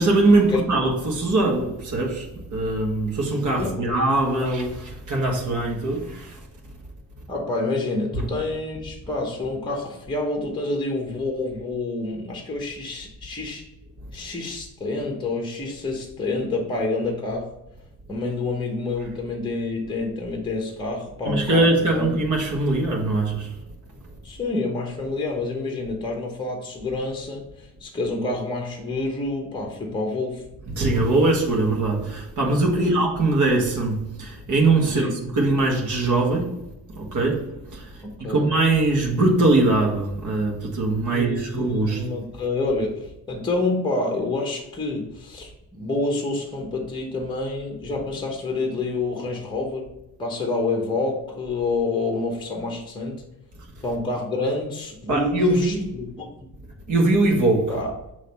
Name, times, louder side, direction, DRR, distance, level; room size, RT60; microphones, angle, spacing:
voice 1, 0.0-6.4 8.1-8.2 21.2-23.5 30.7-35.1 35.3-36.6 36.9-37.5 37.7-37.9 38.3-42.1 55.1-55.9 56.9-57.7, right 2 dB, 50° right, -1 dB, 1.6 m, -21 dB
voice 2, 3.6-4.0 7.3-13.6 14.1-17.5 18.1-22.1 24.2-30.4 32.8-33.0 34.9-35.1 38.0-38.5 41.1-49.9 50.2-53.2 53.8-56.3 57.7-57.9, left 2 dB, 10° left, 1 dB, 1.0 m, -28 dB
6.5 x 3.1 x 5.2 m, 0.89 s
cardioid pair, 155°, 40 cm